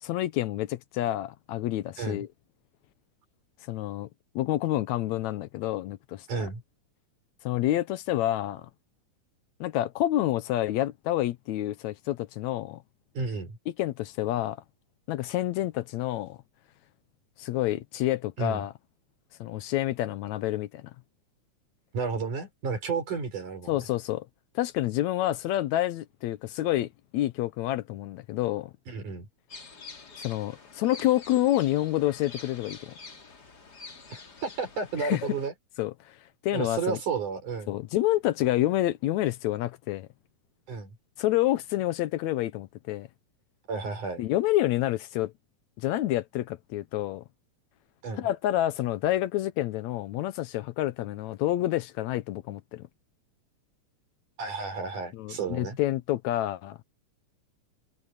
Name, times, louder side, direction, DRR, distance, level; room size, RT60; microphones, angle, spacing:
voice 1, 0.0-2.3 3.7-4.1 4.4-6.3 7.4-8.7 9.6-12.8 13.7-14.6 15.1-16.4 17.4-18.7 19.4-20.8 23.7-24.3 24.6-28.7 30.2-32.9 35.0-35.3 35.8-36.2 36.4-37.0 37.7-40.1 41.2-43.1 44.2-45.3 45.8-47.2 48.2-52.8 55.1-56.8, left 14 dB, 75° left, 1.9 m, -28 dB
voice 2, 6.3-6.6 13.1-13.6 18.4-18.6 21.9-23.7 28.9-29.3 34.1-35.5 36.5-37.7 40.7-40.9 43.7-44.2 48.0-48.3 54.4-55.8, right 5 dB, 80° right, 6.3 m, -32 dB
sound 1, 29.5-35.5, left 4 dB, 35° left, 2.6 m, -47 dB
omnidirectional pair, 3.5 m